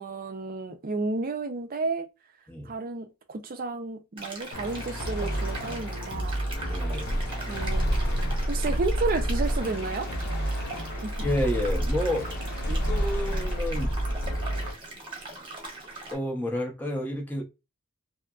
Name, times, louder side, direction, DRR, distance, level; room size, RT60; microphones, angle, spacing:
voice 1, 0.0-2.1 2.7-6.4 7.5-7.8 8.5-10.1 11.0-11.1, right 3 dB, 40° right, 0.5 m, -31 dB
sound 1, 4.2-16.2, right 2 dB, 25° right, 0.9 m, -41 dB
sound 2, 4.5-14.7, right 1 dB, 45° left, 0.8 m, -32 dB
voice 2, 6.7-7.2 11.2-12.4 12.7-13.9 16.1-17.4, left 1 dB, 10° left, 0.6 m, -30 dB
sound 3, 7.0-9.7 10.9-14.4, equal, 70° left, 0.5 m, -30 dB
2.7 x 2.5 x 2.3 m
head